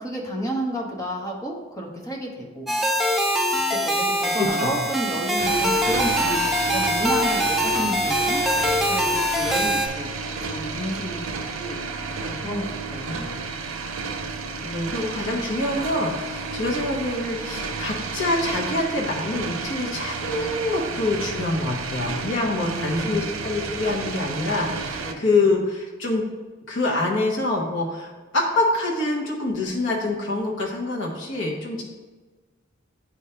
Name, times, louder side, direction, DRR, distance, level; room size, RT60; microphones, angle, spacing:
voice 1, 0.0-2.7 3.8-8.4 8.8-10.1 10.4-11.8 12.2-13.4 22.6-23.2 25.0-25.1 31.7-31.8, right 1 dB, 15° left, -1 dB, 1.0 m, -31 dB
sound 1, 2.7-9.9, equal, ahead, 0.5 m, -23 dB
voice 2, 4.4-4.8 14.6-26.2 26.7-31.8, left 2 dB, 65° left, -2 dB, 1.0 m, -25 dB
sound 2, 5.4-25.1, right 4 dB, 80° right, 0.6 m, -32 dB
9.9 x 3.3 x 2.8 m, 1.3 s
head